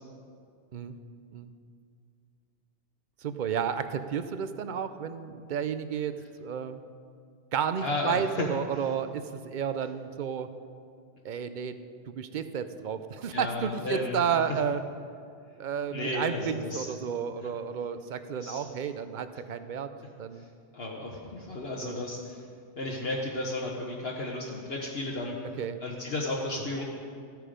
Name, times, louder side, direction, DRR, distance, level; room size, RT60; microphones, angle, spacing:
voice 1, 3.2-6.8 7.5-10.5 11.2-11.8 12.1-14.8 15.6-19.9 20.2-20.5 21.8-22.0 25.6-25.8, right 7 dB, 50° right, 11 dB, 0.6 m, -32 dB
voice 2, 7.8-8.5 13.3-14.2 15.9-16.9 17.4-17.5 18.3-18.7 20.4-20.5 20.7-22.4 22.8-25.4 25.8-26.8, left 2 dB, 60° left, -3 dB, 1.4 m, -33 dB
15.0 x 9.2 x 5.1 m, 2.3 s
omnidirectional pair, 1.2 m